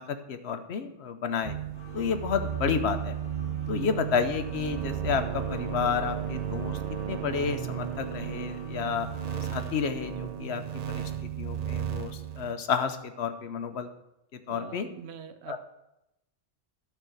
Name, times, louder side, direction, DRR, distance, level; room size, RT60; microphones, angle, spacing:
voice 1, 0.0-1.6 1.9-3.2 3.7-6.8 7.1-9.1 9.5-10.6 10.9-13.9 14.5-14.9 15.5-15.6, left 6 dB, 80° left, 8 dB, 1.1 m, -31 dB
sound 1, 1.4-12.5, right 9 dB, 45° right, 0.6 m, -34 dB
sound 2, 1.7-9.9, equal, 60° left, 3.6 m, -47 dB
voice 2, 3.4-4.0 14.5-15.6, right 7 dB, 85° right, 10 dB, 1.0 m, -44 dB
11.5 x 4.6 x 6.4 m, 0.88 s
omnidirectional pair, 1.1 m